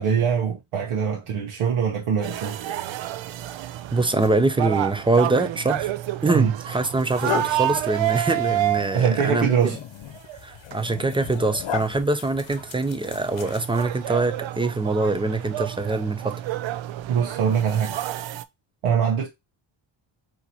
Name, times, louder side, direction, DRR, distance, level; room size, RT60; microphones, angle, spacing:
voice 1, 0.0-2.6 6.3-6.5 8.9-9.8 17.1-18.0 18.8-19.3, right 7 dB, 90° right, 1.0 m, -23 dB
sound 1, 2.2-9.5 10.2-10.4 10.7-10.8 11.5-11.6 11.9-12.0 12.3-18.4, right 13 dB, 65° right, 0.6 m, -29 dB
voice 2, 3.9-5.9 6.2-9.5 10.4-16.3, right 2 dB, 10° right, 0.5 m, -24 dB
sound 2, 5.9-6.1 6.7-14.1, left 8 dB, 65° left, 0.9 m, -36 dB
4.4 x 2.9 x 4.1 m
cardioid pair, 90°, 49 cm